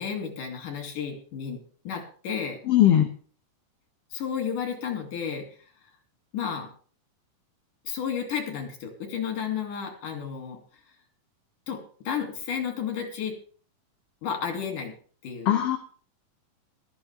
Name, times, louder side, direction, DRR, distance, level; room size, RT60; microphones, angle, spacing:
voice 1, 0.0-1.6 1.8-2.6 4.1-5.5 6.3-6.7 7.9-10.6 11.7-11.8 12.1-13.3 14.2-14.9 15.2-15.6, left 7 dB, 85° left, 3 dB, 4.4 m, -32 dB
voice 2, 2.7-3.1 15.5-15.8, left 11 dB, 65° left, 7 dB, 1.6 m, -19 dB
16.0 x 13.0 x 3.6 m, 0.42 s
omnidirectional pair, 3.6 m